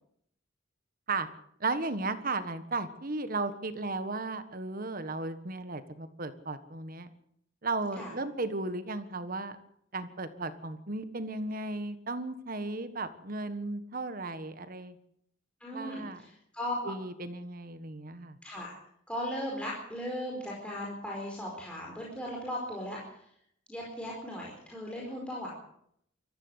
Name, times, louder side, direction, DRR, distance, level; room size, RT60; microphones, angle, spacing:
voice 1, 1.6-7.1 7.6-9.6 9.9-15.0 15.7-16.2 16.8-18.4, right 3 dB, 45° right, 11 dB, 1.5 m, -35 dB
voice 2, 15.6-16.9 18.4-18.7 19.1-23.2 23.7-25.5, equal, 5° left, -3 dB, 4.7 m, -37 dB
23.0 x 14.5 x 8.1 m, 0.72 s
head